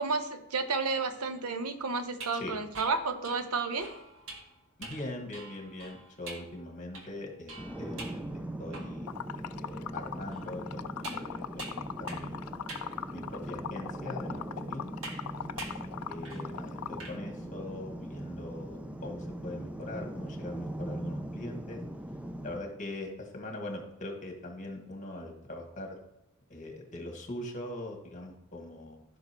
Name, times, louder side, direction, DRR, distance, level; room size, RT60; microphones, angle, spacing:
voice 1, 0.0-3.9, right 4 dB, 90° right, 8 dB, 0.9 m, -31 dB
sound 1, 2.1-9.2 9.7-9.8 10.3-12.4 12.7-12.9 13.6-13.7 15.0-15.3 15.6-15.9 16.2-16.5 16.8-17.2, right 3 dB, 65° right, 1.6 m, -46 dB
voice 2, 4.8-8.2 8.6-12.5 13.1-14.9 15.6-15.7 16.1-21.8 22.4-26.0 26.5-29.0, left 1 dB, 35° left, 2 dB, 1.7 m, -42 dB
sound 2, 7.6-22.6, right 1 dB, 5° right, 0.4 m, -40 dB
Liquid, 9.1-17.1, left 9 dB, 70° left, 0.4 m, -40 dB
14.5 x 5.8 x 3.0 m, 0.89 s
head